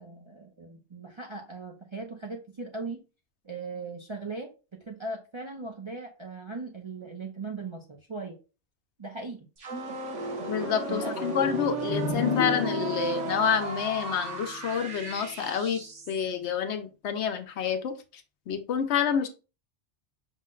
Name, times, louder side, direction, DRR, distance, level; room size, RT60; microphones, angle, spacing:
voice 1, 0.0-3.0 3.4-8.4 9.0-9.5 10.9-11.2, right 3 dB, 40° right, 0 dB, 0.4 m, -39 dB
sound 1, 9.6-16.3, right 4 dB, 90° right, 1.4 m, -35 dB
voice 2, 10.5-19.3, left 7 dB, 70° left, 7 dB, 0.9 m, -28 dB
sound 2, 11.4-15.1, left 5 dB, 45° left, 1.1 m, -33 dB
5.6 x 2.1 x 3.7 m, 0.32 s
omnidirectional pair, 1.2 m